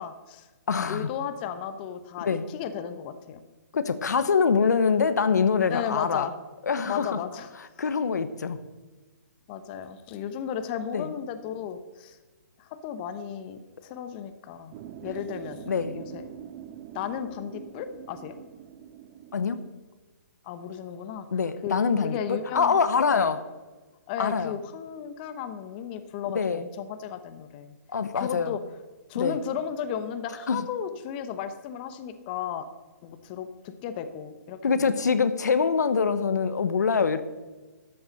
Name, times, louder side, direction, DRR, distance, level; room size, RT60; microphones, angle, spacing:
voice 1, 0.0-0.5 0.9-3.4 5.7-6.3 6.9-7.5 9.5-12.2 12.6-14.7 15.0-15.7 15.9-16.2 16.9-18.4 20.4-21.3 21.6-21.7 22.0-22.8 23.1-23.3 24.1-27.8 28.1-28.6 29.1-32.7 33.0-34.9, left 8 dB, 35° left, 9 dB, 0.9 m, -34 dB
voice 2, 0.7-1.1 2.2-2.5 3.7-6.2 6.7-7.2 7.8-8.6 10.9-11.1 15.7-16.0 19.3-19.6 21.3-23.4 24.2-24.5 26.3-26.6 27.9-28.6 29.1-29.4 30.5-30.7 34.6-37.2, left 5 dB, 75° left, 11 dB, 1.0 m, -24 dB
sound 1, 14.7-19.7, right 10 dB, 30° right, 0.6 m, -44 dB
13.0 x 7.1 x 6.4 m, 1.2 s
hypercardioid pair, 140°, 9 cm